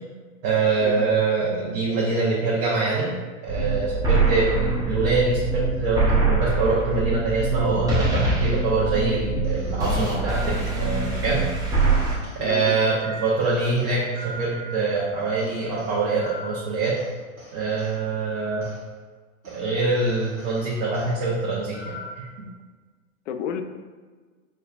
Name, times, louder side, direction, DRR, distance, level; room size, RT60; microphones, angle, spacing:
voice 1, 0.4-3.1 3.4-11.4 12.3-17.0 17.5-18.7 19.5-22.5, right 3 dB, 40° right, -7 dB, 0.9 m, -24 dB
sound 1, 3.5-12.2, right 3 dB, 10° right, 0.7 m, -24 dB
sound 2, 9.4-11.2 11.9-15.0 15.4-18.0 18.6-18.8 19.4-19.6 20.0-21.2 21.7-22.3, right 1 dB, 90° right, 1.0 m, -41 dB
voice 2, 12.4-12.8 23.3-23.6, left 8 dB, 60° left, 7 dB, 0.5 m, -32 dB
5.2 x 2.3 x 2.4 m, 1.4 s
hypercardioid pair, 105°, 40 cm